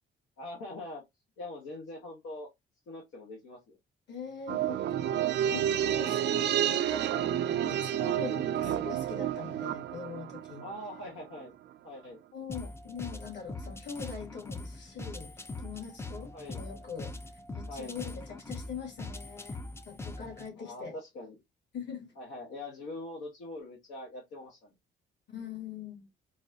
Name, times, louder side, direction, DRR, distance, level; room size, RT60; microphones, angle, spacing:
voice 1, 0.4-1.0 1.4-2.5 2.9-3.8 6.4-6.6 8.6-8.8 10.6-11.5 11.8-12.2 16.3-16.6 17.7-17.9 20.6-21.4 22.2-24.7, left 2 dB, 85° left, 1.1 m, -43 dB
voice 2, 4.1-10.7 12.3-15.3 15.6-17.1 17.5-19.6 19.9-20.9 21.7-22.1 25.3-26.1, left 6 dB, 65° left, 2.1 m, -42 dB
sound 1, 4.5-11.1 11.3-11.4, right 11 dB, 60° right, 0.4 m, -30 dB
sound 2, 12.5-20.5, left 2 dB, 15° left, 0.4 m, -42 dB
3.9 x 2.5 x 2.6 m
cardioid pair, 90°, 20 cm